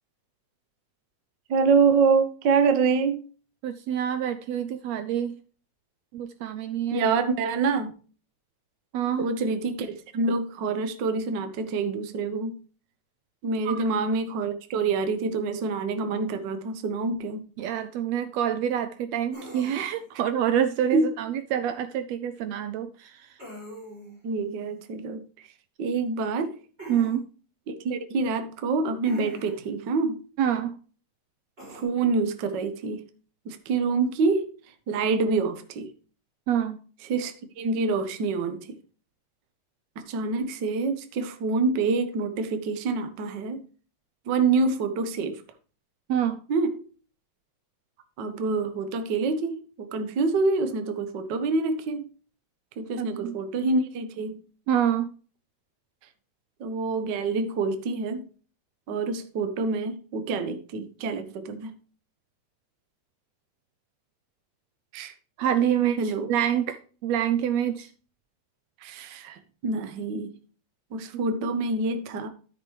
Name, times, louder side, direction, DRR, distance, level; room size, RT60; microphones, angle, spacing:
voice 1, 1.5-3.2 6.9-7.9 9.2-12.6 13.4-17.4 20.9-21.1 24.2-25.2 25.8-26.6 27.7-30.2 31.7-33.0 33.4-34.5 34.9-35.9 37.1-38.8 40.1-43.6 44.3-45.4 46.5-46.8 48.2-52.0 52.8-54.4 56.6-58.2 58.9-61.7 64.9-65.1 66.0-66.3 68.8-70.3 70.9-72.3, right 4 dB, 60° right, 8 dB, 1.1 m, -26 dB
voice 2, 3.6-5.4 6.1-7.1 8.9-9.3 13.6-13.8 17.6-23.4 26.9-27.3 30.4-30.8 36.5-36.8 46.1-46.4 53.0-53.4 54.7-55.1 65.4-67.9, right 9 dB, 80° right, 11 dB, 1.6 m, -27 dB
sound 1, 19.3-20.1 23.4-24.2 26.8-27.2 29.0-29.7 31.6-31.8, equal, 20° right, 3.6 m, -42 dB
13.0 x 6.0 x 3.2 m, 0.38 s
omnidirectional pair, 3.3 m